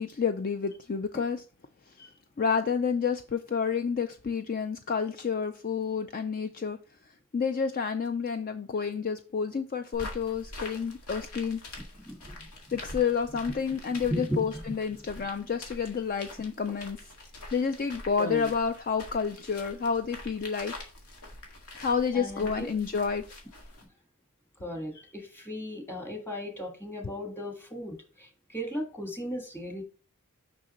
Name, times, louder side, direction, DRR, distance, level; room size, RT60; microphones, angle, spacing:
voice 1, 0.0-1.4 2.4-6.8 7.3-11.6 12.7-17.0 17.5-20.7 21.8-23.2, left 6 dB, 40° left, 0.4 m, -29 dB
sound 1, 9.9-23.9, left 2 dB, 90° left, 2.0 m, -45 dB
voice 2, 12.0-12.5 14.1-14.8 18.2-18.5 22.1-22.7 24.6-29.8, equal, 10° left, 1.5 m, -36 dB
6.1 x 5.8 x 3.0 m
head